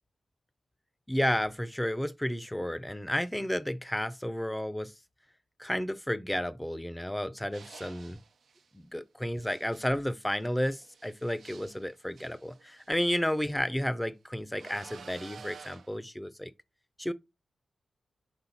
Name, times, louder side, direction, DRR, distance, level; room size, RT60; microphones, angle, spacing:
voice 1, 1.1-4.9 5.6-8.2 8.7-16.5 17.0-17.1, equal, 10° left, 0.7 m, -32 dB
sound 1, 7.5-8.7 9.4-13.6 14.6-16.0, right 5 dB, 80° right, 0.8 m, -51 dB
7.2 x 3.7 x 4.1 m
cardioid pair, 55°, 0 cm